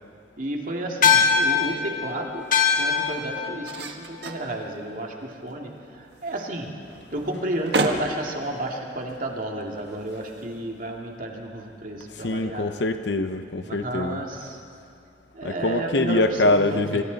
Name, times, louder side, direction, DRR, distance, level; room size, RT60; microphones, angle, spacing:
voice 1, 0.4-2.5 2.7-6.7 7.1-12.7 13.6-14.6 15.3-17.0, right 1 dB, 50° right, 0 dB, 2.4 m, -32 dB
sound 1, 0.8-11.2, right 2 dB, 65° right, 1.5 m, -35 dB
sound 2, 1.0-5.7, left 6 dB, 50° left, 1.7 m, -24 dB
voice 2, 12.1-14.2 15.4-17.0, left 2 dB, 75° left, 8 dB, 0.8 m, -24 dB
26.5 x 25.0 x 4.1 m, 2.5 s
head